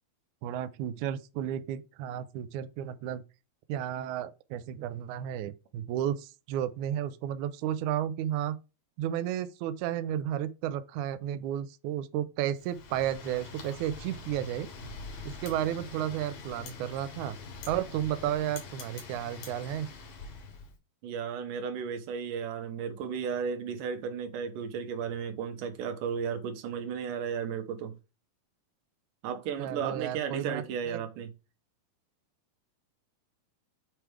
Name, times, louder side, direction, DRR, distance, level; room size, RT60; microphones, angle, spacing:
voice 1, 0.4-3.2 3.7-8.6 9.0-14.7 15.2-17.4 17.7-19.9 29.6-31.0, right 11 dB, 90° right, 1.7 m, -33 dB
Wind, 12.6-20.7, left 3 dB, 65° left, 3.2 m, -44 dB
voice 2, 21.0-28.0 29.2-31.3, right 7 dB, 75° right, 2.4 m, -34 dB
7.6 x 3.4 x 4.7 m
omnidirectional pair, 4.2 m